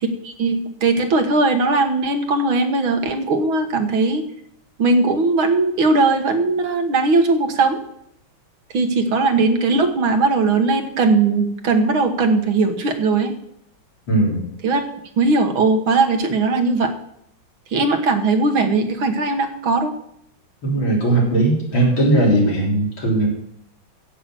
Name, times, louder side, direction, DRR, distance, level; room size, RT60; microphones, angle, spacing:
voice 1, 0.0-4.2 4.8-7.8 8.7-13.3 14.6-14.8 15.2-16.9 17.7-19.9, right 3 dB, 75° right, 6 dB, 2.2 m, -19 dB
voice 2, 14.1-14.5 20.6-23.3, right 2 dB, 70° left, -3 dB, 4.6 m, -18 dB
15.0 x 5.9 x 7.7 m, 0.73 s
omnidirectional pair, 2.3 m